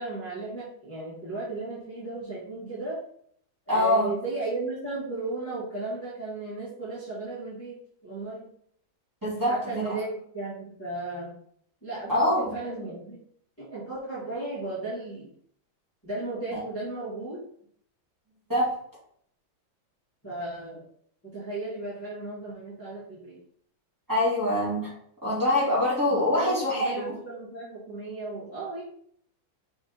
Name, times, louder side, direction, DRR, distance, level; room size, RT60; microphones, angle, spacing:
voice 1, 0.0-3.0 3.7-8.5 9.5-10.1 10.3-11.4 11.8-13.2 13.6-15.3 16.0-17.4 20.2-20.8 21.2-23.4 26.1-28.8, right 2 dB, 5° left, -10 dB, 1.8 m, -35 dB
voice 2, 3.7-4.1 9.2-10.0 12.1-12.5 16.5-16.6 18.5-18.7 24.1-24.9 25.2-27.2, left 1 dB, 10° right, -9 dB, 2.5 m, -24 dB
5.9 x 3.9 x 4.0 m, 0.64 s
omnidirectional pair, 2.1 m